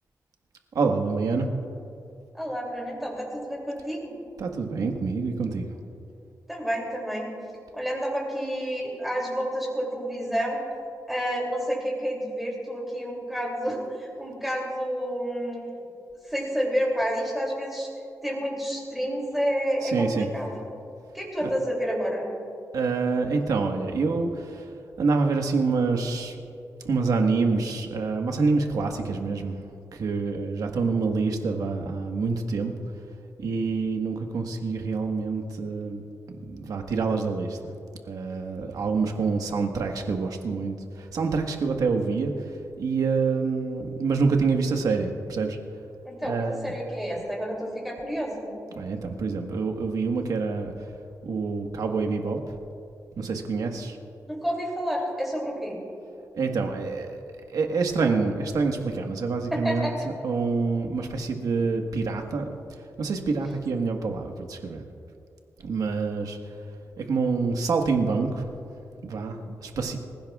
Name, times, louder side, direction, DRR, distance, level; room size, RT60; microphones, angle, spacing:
voice 1, 0.7-1.5 4.4-5.7 19.8-20.3 21.4-21.5 22.7-26.4 26.8-29.6 29.9-32.7 33.4-37.7 38.1-45.6 46.2-46.7 48.7-50.7 51.2-52.4 53.2-54.0 56.3-57.2 57.5-62.5 63.0-64.8 65.6-66.4 67.0-68.4 69.0-70.0, right 4 dB, 75° right, 3 dB, 1.4 m, -27 dB
voice 2, 2.3-4.1 6.5-7.3 7.7-10.6 11.1-15.7 16.3-17.9 18.2-20.6 21.1-22.3 46.0-48.5 54.3-55.8 59.5-60.1, equal, 5° right, -3 dB, 2.8 m, -29 dB
26.0 x 16.5 x 2.4 m, 2.6 s
wide cardioid pair, 175°, 6 cm